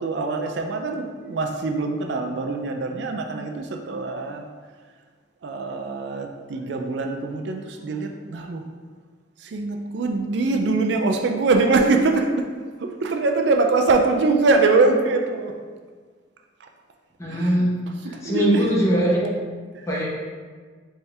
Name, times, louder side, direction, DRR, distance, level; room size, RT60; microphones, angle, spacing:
voice 1, 0.0-4.5 5.4-8.6 9.4-12.5 12.8-15.5 16.6-16.7 17.3-17.6 18.0-18.7 19.7-19.9, right 3 dB, 65° right, 3 dB, 0.4 m, -23 dB
voice 2, 17.2-17.7 18.2-19.3 19.9-20.1, equal, 15° left, -5 dB, 0.9 m, -21 dB
4.2 x 3.5 x 3.3 m, 1.5 s
head